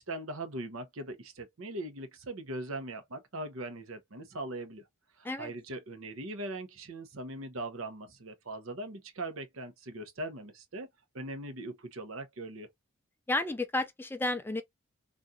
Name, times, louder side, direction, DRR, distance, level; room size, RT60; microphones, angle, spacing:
voice 1, 0.0-4.8 5.2-10.9 11.1-12.7, right 2 dB, 75° right, 0.8 m, -40 dB
voice 2, 13.3-14.6, left 2 dB, 10° left, 0.3 m, -31 dB
3.6 x 2.5 x 2.6 m
head